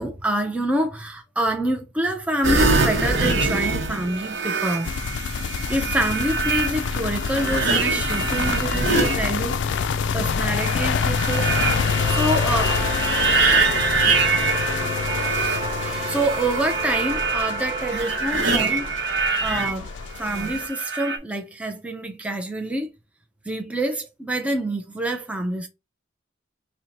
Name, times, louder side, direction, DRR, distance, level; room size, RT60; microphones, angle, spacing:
voice 1, 0.0-4.9 5.7-9.6 10.1-11.5 12.1-12.8 15.8-18.9 19.4-19.9 20.2-22.9 23.5-25.7, right 1 dB, 5° right, 0.5 m, -26 dB
sound 1, 2.4-9.8 10.4-19.7 20.2-21.2, right 3 dB, 70° right, 0.9 m, -24 dB
sound 2, 4.8-20.7, left 6 dB, 75° left, 0.4 m, -27 dB
sound 3, 10.7-20.8, right 3 dB, 30° right, 0.9 m, -33 dB
4.4 x 2.1 x 3.9 m
head